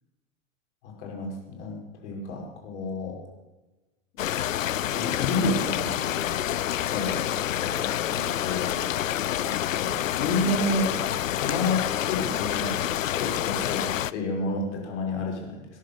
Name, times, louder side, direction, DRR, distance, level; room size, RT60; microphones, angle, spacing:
voice 1, 0.8-3.2 4.9-6.3 6.8-8.7 9.3-9.4 9.7-10.9 11.3-12.8 13.1-15.7, left 2 dB, 60° left, 0 dB, 5.1 m, -30 dB
sound 1, 4.2-14.1, left 11 dB, 75° left, 0.6 m, -28 dB
19.5 x 10.5 x 6.7 m, 1.1 s
figure-of-eight pair, 90°, 40 cm